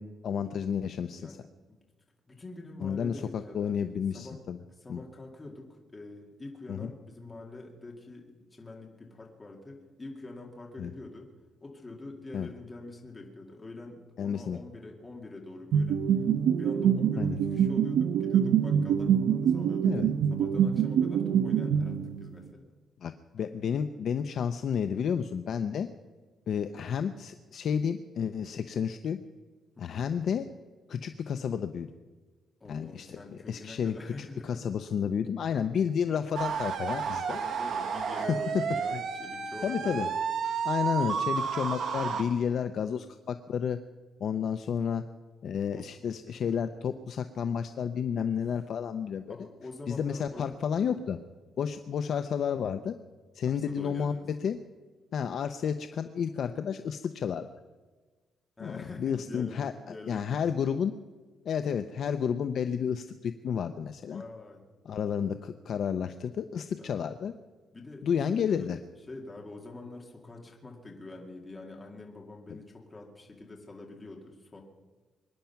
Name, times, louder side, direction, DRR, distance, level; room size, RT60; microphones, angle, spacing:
voice 1, 0.0-1.4 2.8-4.6 4.9-5.0 6.7-6.9 10.8-10.9 12.3-12.5 14.2-14.6 17.2-17.4 19.8-20.1 23.0-25.9 26.5-29.2 29.8-30.5 30.9-31.9 32.7-37.4 38.2-38.6 38.9-39.0 39.6-40.1 40.6-43.8 44.2-45.0 45.4-49.4 49.9-51.2 51.6-52.9 53.3-54.1 54.4-54.6 55.1-57.5 58.6-60.9 61.4-64.2 64.9-67.3 68.0-68.8, left 7 dB, 50° left, 9 dB, 0.6 m, -31 dB
voice 2, 1.2-1.8 2.3-3.9 4.1-4.4 4.8-11.3 11.6-16.2 16.5-20.0 20.3-22.7 29.8-30.1 32.6-34.7 37.3-40.3 41.0-41.1 45.7-45.9 46.3-46.6 48.3-48.5 49.3-51.0 53.4-54.2 58.6-60.5 64.1-64.6 66.8-66.9 67.7-68.7 69.1-74.6, left 2 dB, 15° left, 0 dB, 2.1 m, -45 dB
sound 1, 15.7-22.4, right 8 dB, 80° right, 0.7 m, -25 dB
sound 2, 36.3-42.2, right 6 dB, 55° right, 1.5 m, -31 dB
23.5 x 10.5 x 5.8 m, 1.4 s
cardioid pair, 165°, 0 cm